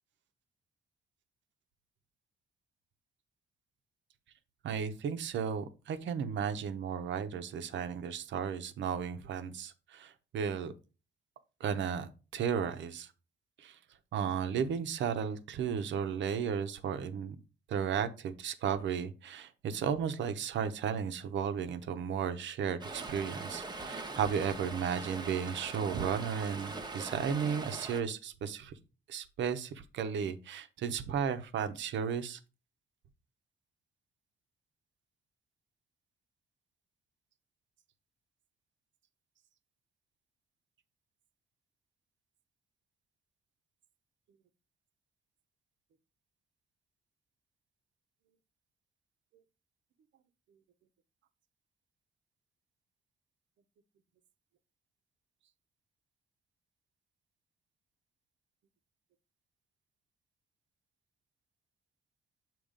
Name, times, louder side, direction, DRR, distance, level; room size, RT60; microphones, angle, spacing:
voice 1, 4.6-10.7 11.6-13.1 13.6-13.8 14.1-17.4 17.7-28.7 29.1-32.4, right 7 dB, 70° right, 10 dB, 0.8 m, -34 dB
Stream, 22.8-28.0, right 3 dB, 20° right, 0.9 m, -42 dB
7.3 x 3.0 x 5.0 m, 0.33 s
cardioid pair, 90°, 20 cm